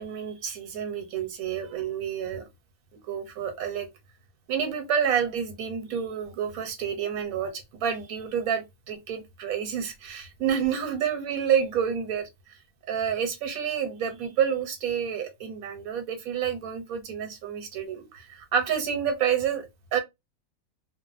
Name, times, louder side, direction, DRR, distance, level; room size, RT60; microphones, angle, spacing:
voice 1, 0.0-2.4 2.9-3.9 4.5-12.3 12.9-20.0, right 8 dB, 75° right, 1.2 m, -29 dB
3.0 x 2.1 x 2.4 m
omnidirectional pair, 1.5 m